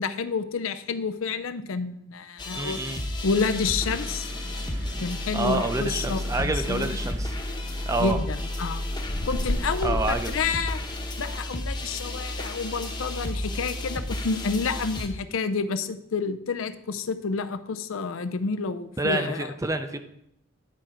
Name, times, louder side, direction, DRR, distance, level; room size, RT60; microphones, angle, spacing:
voice 1, 0.0-2.8 3.2-4.3 5.0-7.0 8.0-8.8 9.3-10.8 11.2-19.5, left 4 dB, 90° left, 11 dB, 0.5 m, -29 dB
sound 1, 2.4-15.1, left 1 dB, 20° left, 0.9 m, -32 dB
voice 2, 2.6-3.0 5.3-7.3 7.8-8.2 9.8-10.4 19.0-20.0, right 2 dB, 15° right, 8 dB, 0.5 m, -28 dB
sound 2, 3.2-8.2, right 2 dB, 60° right, 1.6 m, -47 dB
sound 3, 9.0-11.3, left 1 dB, 50° left, 1.1 m, -32 dB
10.5 x 4.3 x 5.0 m, 0.76 s
head